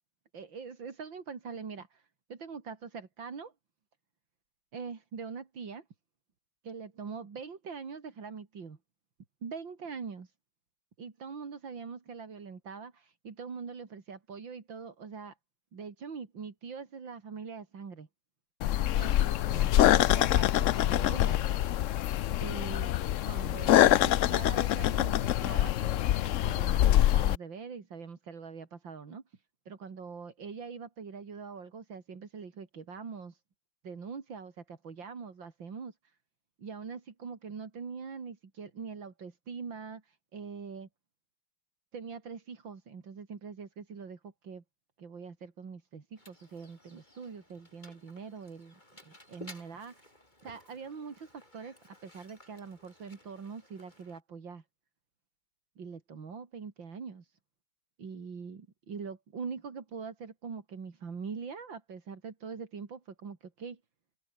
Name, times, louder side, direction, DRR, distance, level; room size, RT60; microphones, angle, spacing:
voice 1, 0.3-2.0 2.3-3.5 4.7-5.8 6.6-8.8 9.4-10.3 11.0-15.3 15.7-18.1 19.0-21.4 22.4-22.9 23.2-26.1 26.4-29.2 29.7-33.4 33.8-35.9 36.6-40.9 41.9-44.6 45.0-48.7 49.0-50.1 50.4-54.6 55.8-57.3 58.0-63.8, right 5 dB, 85° right, 3.4 m, -43 dB
sound 1, 18.6-27.4, left 13 dB, 85° left, 0.6 m, -25 dB
Mechanisms, 46.1-54.2, left 1 dB, 20° left, 7.0 m, -55 dB
omnidirectional pair, 2.0 m